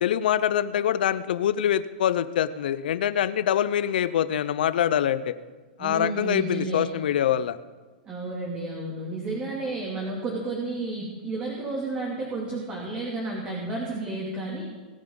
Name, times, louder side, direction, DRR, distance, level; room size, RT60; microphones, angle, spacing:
voice 1, 0.0-5.4 5.8-7.6, left 10 dB, 80° left, 14 dB, 0.7 m, -24 dB
voice 2, 5.8-6.9 8.1-14.6, right 2 dB, 25° right, -2 dB, 2.6 m, -31 dB
21.0 x 9.8 x 3.9 m, 1.3 s
hypercardioid pair, 135°, 5 cm